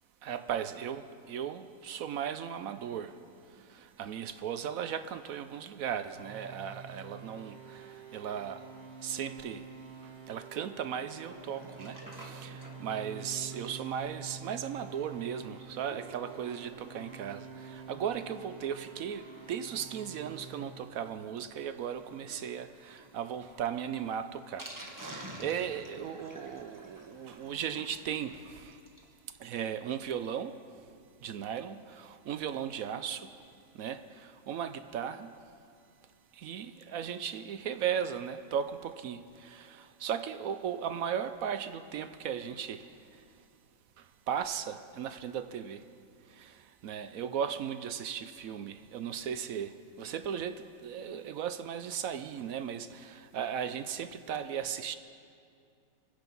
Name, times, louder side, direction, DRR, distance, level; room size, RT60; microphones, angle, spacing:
voice 1, 0.2-3.1 4.0-8.6 9.0-9.6 10.3-24.7 25.0-28.7 29.4-30.5 31.2-33.3 33.8-34.0 34.5-35.3 36.4-42.9 44.3-45.8 46.4-46.5 46.8-55.0, right 8 dB, 65° right, 11 dB, 0.9 m, -36 dB
sound 1, 6.1-20.7, right 5 dB, 30° right, 2.1 m, -48 dB
Sink (filling or washing), 11.1-29.2 29.5-29.6 29.8-29.9 30.2-30.3, right 1 dB, 10° right, 1.3 m, -52 dB
25.0 x 9.9 x 5.4 m, 2.4 s
omnidirectional pair, 1.9 m